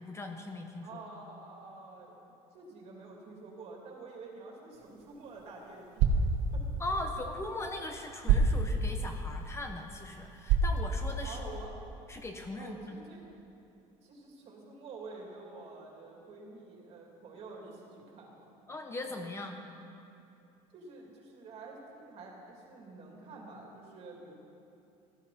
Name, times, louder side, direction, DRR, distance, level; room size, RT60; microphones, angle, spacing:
voice 1, 0.0-1.0 6.8-11.5 12.1-13.0 18.7-19.6, left 2 dB, 20° left, 4 dB, 0.9 m, -39 dB
voice 2, 0.8-2.1 2.5-6.0 6.5-6.6 11.2-11.8 12.6-13.3 14.0-18.5 20.7-24.4, right 3 dB, 45° right, -1 dB, 3.0 m, -48 dB
sound 1, 4.7-11.7, right 4 dB, 75° right, 1.3 m, -31 dB
15.5 x 13.0 x 4.3 m, 2.8 s
cardioid pair, 135°, 14 cm